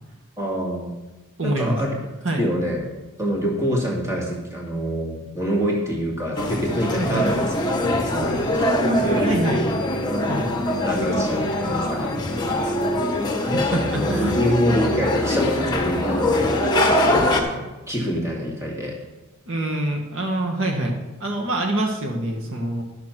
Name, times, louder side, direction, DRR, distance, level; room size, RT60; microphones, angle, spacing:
voice 1, 0.4-0.9 1.4-1.9 2.4-2.8 3.2-7.5 7.9-8.5 9.0-9.3 10.8-12.2 12.5-12.8 13.9-16.6 16.8-19.0, equal, 15° right, -2 dB, 2.2 m, -26 dB
voice 2, 1.4-1.8 2.2-2.4 7.0-7.3 8.5-9.6 10.3-10.5 13.4-14.4 19.5-20.9 21.2-22.8, right 1 dB, 60° right, 1 dB, 1.5 m, -25 dB
sound 1, 6.4-17.4, left 1 dB, 20° left, 1.4 m, -22 dB
12.0 x 6.7 x 5.9 m, 1.1 s
head